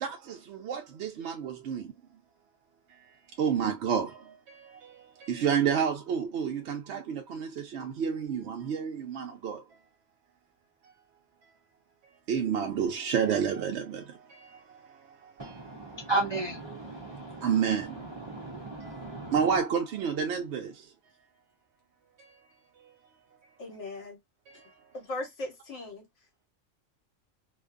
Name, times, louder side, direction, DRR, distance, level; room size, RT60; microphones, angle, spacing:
voice 1, 0.0-1.9 3.4-9.6 12.3-14.5 15.4-15.5 16.7-16.8 17.4-18.1 18.8-20.7, right 7 dB, 65° right, 0.8 m, -30 dB
voice 2, 15.4-17.4 18.3-19.3, right 2 dB, 40° right, 0.4 m, -34 dB
voice 3, 23.6-24.2 24.9-26.1, left 2 dB, 70° left, 1.1 m, -38 dB
2.5 x 2.2 x 2.3 m
omnidirectional pair, 1.3 m